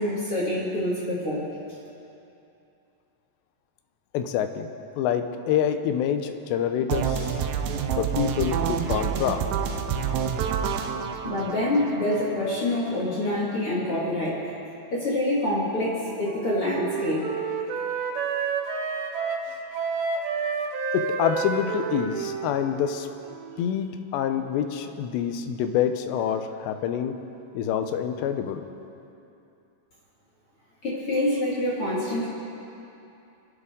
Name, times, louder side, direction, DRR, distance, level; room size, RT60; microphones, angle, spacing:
voice 1, 0.0-1.5 11.2-14.4 14.9-17.2 30.8-32.3, left 1 dB, 45° left, -6 dB, 2.1 m, -26 dB
voice 2, 4.1-4.7 5.0-7.4 7.9-9.4 20.9-23.1 23.6-27.1 27.5-28.6, left 9 dB, 80° left, 8 dB, 2.8 m, -26 dB
sound 1, 6.9-12.9, right 7 dB, 85° right, 2.8 m, -28 dB
Wind instrument woodwind instrument, 15.7-23.7, right 5 dB, 70° right, 2.8 m, -30 dB
25.5 x 11.0 x 3.7 m, 2.8 s
omnidirectional pair, 5.1 m